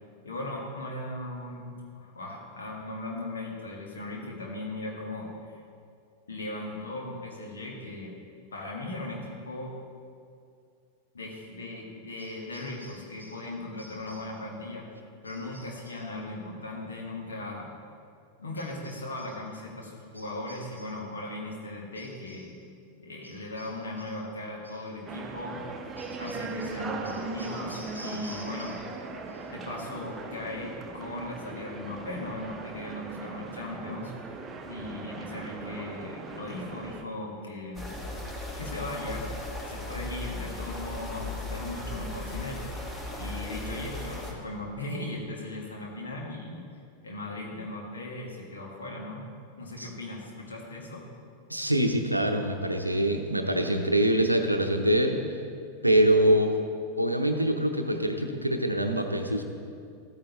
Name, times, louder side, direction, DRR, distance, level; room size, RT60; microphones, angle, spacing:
voice 1, 0.2-5.6 6.3-8.2 8.5-9.8 11.1-14.9 15.2-17.7 18.4-22.5 23.0-25.6 26.2-28.8 29.5-34.1 34.6-37.9 38.5-39.3 39.7-42.6 43.1-46.7 47.0-49.3 49.6-51.1, left 2 dB, 70° left, -1 dB, 1.7 m, -38 dB
sound 1, 12.2-13.5 13.8-14.4 15.2-16.1 18.5-19.4 20.1-21.1 21.9-22.6 23.2-24.2 24.6-24.9 26.0-29.0 29.3-29.8, equal, 90° left, 1.5 m, -51 dB
sound 2, 25.1-37.0, right 3 dB, 20° right, 0.8 m, -39 dB
sound 3, 37.7-44.3, left 2 dB, 15° left, 1.6 m, -37 dB
voice 2, 51.5-55.2 55.8-56.5 57.0-59.4, right 1 dB, 85° right, 5 dB, 0.7 m, -24 dB
13.5 x 8.8 x 3.0 m, 2.4 s
figure-of-eight pair, 90°, 0 cm